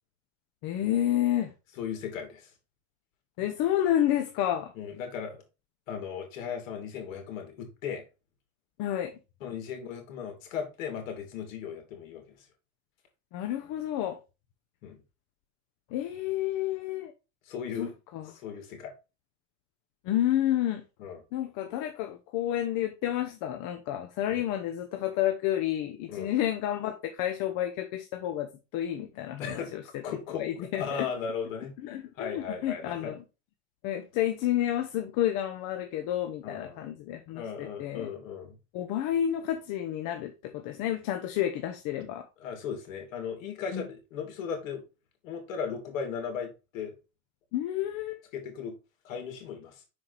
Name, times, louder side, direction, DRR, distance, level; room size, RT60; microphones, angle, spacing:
voice 1, 0.6-1.5 3.4-4.7 8.8-9.1 13.3-14.2 15.9-17.1 17.8-18.3 20.0-20.8 21.3-30.0 30.4-31.1 31.8-33.2 33.8-38.1 38.7-42.2 43.7-43.8 47.5-48.2, left 12 dB, 55° left, 1.0 m, -30 dB
voice 2, 1.8-2.5 4.7-5.4 5.9-8.0 9.4-12.5 14.8-15.0 17.4-17.9 18.3-18.9 21.0-21.2 24.3-24.4 26.1-26.3 29.4-29.7 30.0-30.4 30.7-31.7 32.1-33.1 36.4-36.8 37.3-38.6 42.4-44.8 45.2-46.9 48.3-48.7 49.0-49.8, left 7 dB, 80° left, 2.9 m, -37 dB
6.1 x 4.8 x 4.1 m
supercardioid pair, 110°, 39 cm